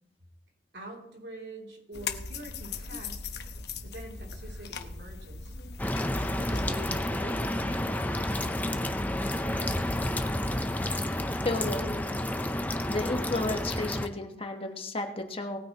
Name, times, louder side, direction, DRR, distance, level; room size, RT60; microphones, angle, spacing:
voice 1, 0.7-3.2 3.8-5.6 6.2-10.4, right 1 dB, 75° right, -1 dB, 3.0 m, -46 dB
sound 1, 1.9-6.9, left 5 dB, 65° left, 1.0 m, -39 dB
sound 2, 5.8-14.1, left 1 dB, 10° left, 0.6 m, -30 dB
voice 2, 11.4-12.0 12.9-15.6, left 2 dB, 30° left, 4 dB, 1.3 m, -32 dB
19.0 x 9.4 x 3.0 m, 0.78 s
head